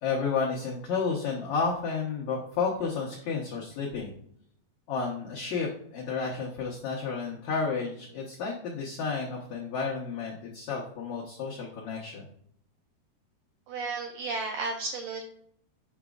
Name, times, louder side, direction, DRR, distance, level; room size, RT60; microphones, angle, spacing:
voice 1, 0.0-4.1 4.9-12.2, left 5 dB, 85° left, -4 dB, 1.5 m, -31 dB
voice 2, 13.7-15.2, right 3 dB, 90° right, 3 dB, 1.9 m, -33 dB
7.2 x 6.0 x 2.4 m, 0.68 s
omnidirectional pair, 4.7 m